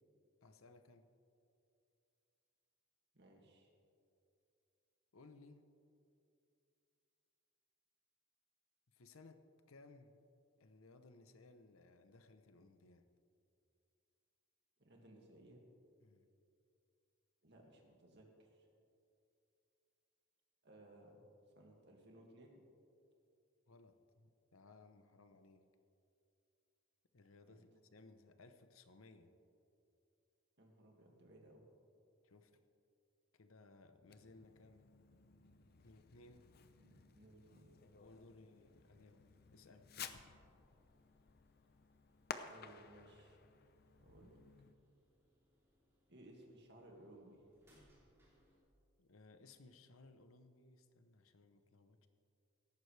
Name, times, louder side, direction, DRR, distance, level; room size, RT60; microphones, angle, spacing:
voice 1, 0.4-1.1 5.1-5.6 8.9-10.2 10.6-13.0 16.0-16.2 23.7-25.6 27.1-29.3 32.2-32.6 33.3-34.9 35.8-36.5 38.0-39.2 39.5-40.0 49.0-52.1, left 3 dB, 75° left, 9 dB, 0.8 m, -62 dB
voice 2, 3.1-3.7 14.8-15.6 17.4-18.7 20.6-21.2 21.6-22.6 27.5-27.6 30.6-31.7 36.8-37.8 42.5-43.4 44.0-44.4 46.1-47.4, right 1 dB, 55° right, 0 dB, 2.1 m, -61 dB
Fireworks, 34.1-44.8, left 6 dB, 45° left, 0.6 m, -55 dB
sound 1, 37.5-48.6, equal, 10° right, 3.4 m, -76 dB
17.5 x 14.0 x 3.3 m, 2.6 s
head